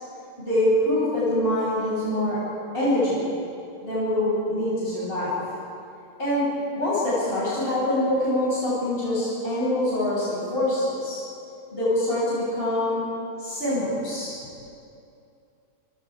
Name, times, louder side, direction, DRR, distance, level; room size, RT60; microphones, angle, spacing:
voice 1, 0.4-2.4 2.7-3.2 3.8-5.4 6.2-6.5 6.7-11.2 11.7-13.0 13.4-14.3, left 1 dB, 25° left, -9 dB, 7.7 m, -24 dB
29.0 x 27.0 x 5.0 m, 2.6 s
omnidirectional pair, 2.2 m